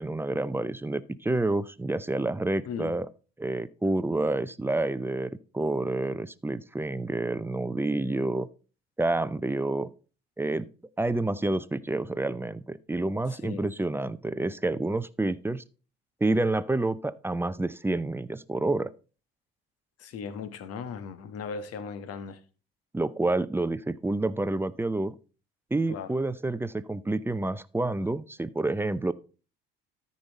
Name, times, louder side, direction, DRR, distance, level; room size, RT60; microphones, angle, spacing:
voice 1, 0.0-3.1 3.4-8.5 9.0-9.9 10.4-10.7 11.0-15.6 16.2-18.9 22.9-25.2 25.7-29.1, right 2 dB, 10° right, 0.6 m, -28 dB
voice 2, 20.0-22.4 25.9-26.1, left 5 dB, 55° left, 1.3 m, -37 dB
13.5 x 5.3 x 4.1 m
hypercardioid pair, 60°, 29 cm